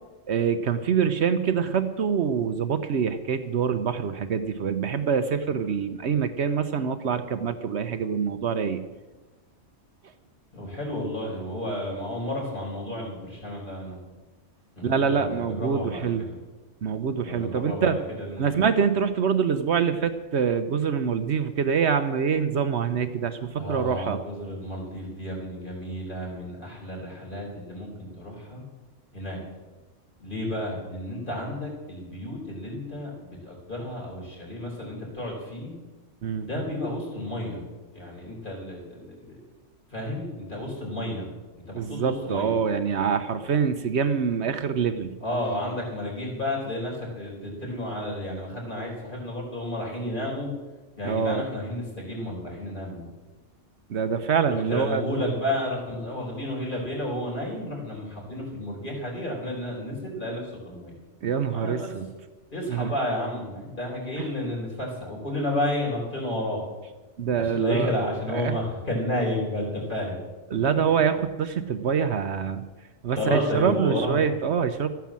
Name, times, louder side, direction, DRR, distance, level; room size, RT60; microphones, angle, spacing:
voice 1, 0.3-8.8 14.8-16.2 16.8-18.0 18.4-24.2 36.2-36.5 41.7-45.1 51.0-51.4 53.9-55.3 61.2-62.1 62.7-62.9 64.2-64.3 67.2-67.9 68.3-68.6 70.5-72.6 73.0-74.9, right 7 dB, 65° right, 10 dB, 1.0 m, -25 dB
voice 2, 10.5-14.0 14.7-16.4 17.2-18.5 23.5-28.6 29.1-29.4 30.2-35.7 36.4-37.6 37.9-39.4 39.9-41.3 41.7-42.6 45.2-50.5 51.0-53.1 54.5-60.9 61.5-61.9 62.5-66.6 67.4-70.2 73.1-74.2, left 1 dB, 40° left, -2 dB, 4.7 m, -31 dB
13.5 x 9.3 x 7.4 m, 1.2 s
omnidirectional pair, 1.3 m